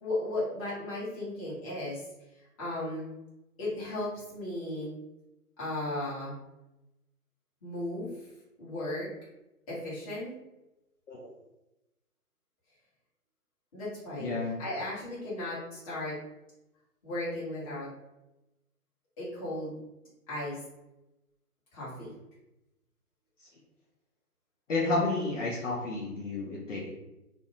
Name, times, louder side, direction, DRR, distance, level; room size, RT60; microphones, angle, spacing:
voice 1, 0.0-2.0 2.6-3.1 3.6-4.9 5.6-6.3 7.6-8.1 8.6-9.1 9.7-10.3 13.7-14.3 14.6-16.1 17.0-17.9 19.2-19.8 20.3-20.6 21.7-22.1, left 1 dB, 25° left, -9 dB, 1.0 m, -35 dB
voice 2, 14.2-14.6 24.7-26.9, left 3 dB, 55° left, -5 dB, 0.6 m, -31 dB
2.5 x 2.1 x 2.7 m, 0.95 s
hypercardioid pair, 150°, 45 cm